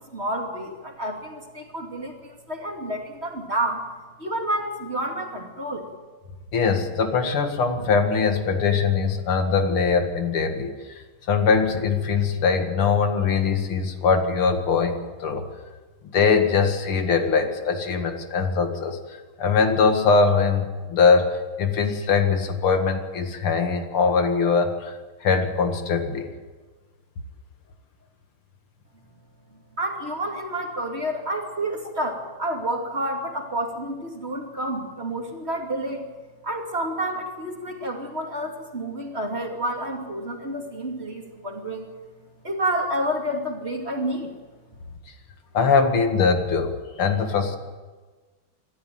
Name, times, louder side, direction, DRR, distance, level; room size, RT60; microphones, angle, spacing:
voice 1, 0.0-3.8 4.2-5.9 29.8-36.0 36.4-41.9 42.4-44.3, right 1 dB, 30° right, 2 dB, 2.8 m, -29 dB
voice 2, 6.5-10.7 11.3-15.4 16.0-19.0 19.4-24.9 25.2-26.3 45.5-47.6, left 5 dB, 80° left, 6 dB, 2.8 m, -22 dB
25.5 x 13.5 x 9.3 m, 1.4 s
omnidirectional pair, 2.3 m